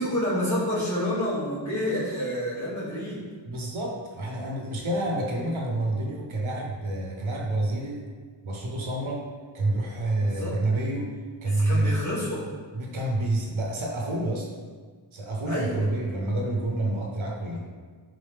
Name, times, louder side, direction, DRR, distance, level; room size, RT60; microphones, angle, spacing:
voice 1, 0.0-3.2 10.2-10.5 11.5-12.4 15.4-15.8, left 1 dB, 40° left, -11 dB, 1.4 m, -28 dB
voice 2, 3.4-8.1 8.4-9.3 9.5-11.1 11.4-12.1 12.7-14.5 15.1-17.7, right 1 dB, 85° right, 0 dB, 0.7 m, -28 dB
3.7 x 3.1 x 3.3 m, 1.5 s
wide cardioid pair, 55°, 46 cm